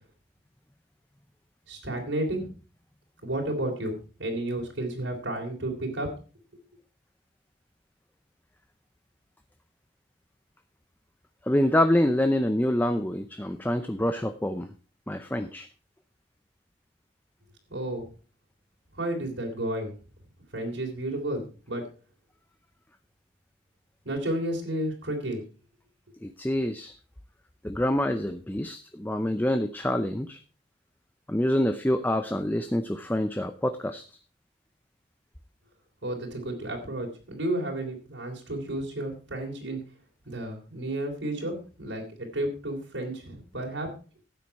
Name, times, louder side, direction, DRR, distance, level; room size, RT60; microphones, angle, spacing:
voice 1, 1.7-2.5 3.2-6.1 17.7-18.1 18.9-20.0 20.5-21.9 24.0-25.4 36.0-39.8 40.3-43.9, right 1 dB, 70° right, 0 dB, 3.5 m, -32 dB
voice 2, 11.4-14.7 15.1-15.7 26.2-26.9 27.6-30.4 31.3-34.0, left 1 dB, 10° left, 8 dB, 0.6 m, -26 dB
12.5 x 9.1 x 4.7 m, 0.37 s
head